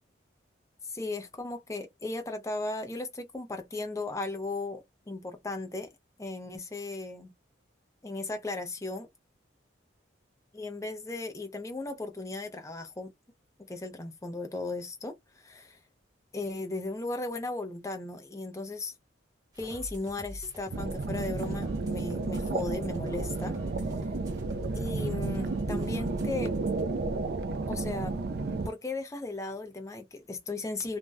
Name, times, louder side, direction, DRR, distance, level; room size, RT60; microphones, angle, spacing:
voice 1, 0.8-5.9 6.2-7.3 8.0-9.1 10.5-13.1 13.7-15.8 16.3-18.9 19.6-23.5 24.7-26.5 27.7-28.1 28.6-31.0, left 2 dB, 15° left, 0.5 m, -36 dB
sound 1, 19.5-26.9, equal, 20° right, 0.8 m, -44 dB
sound 2, 20.7-28.7, right 3 dB, 50° right, 0.4 m, -32 dB
2.5 x 2.1 x 3.3 m
head